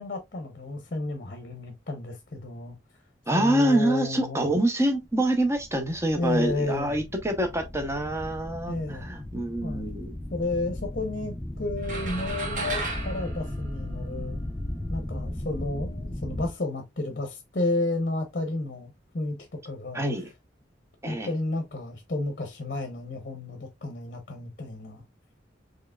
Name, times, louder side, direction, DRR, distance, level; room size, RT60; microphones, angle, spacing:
voice 1, 0.0-2.8 3.3-4.4 6.2-7.0 8.7-9.1 9.6-10.0 10.3-14.4 14.9-20.0 21.1-25.0, left 2 dB, 45° left, 0.7 m, -32 dB
voice 2, 3.3-10.1 19.9-20.3 21.0-21.3, right 1 dB, 15° right, 0.8 m, -26 dB
sound 1, 5.1-16.5, left 1 dB, 10° left, 0.6 m, -36 dB
sound 2, 11.8-14.4, right 3 dB, 45° right, 1.2 m, -35 dB
4.6 x 3.1 x 2.3 m
head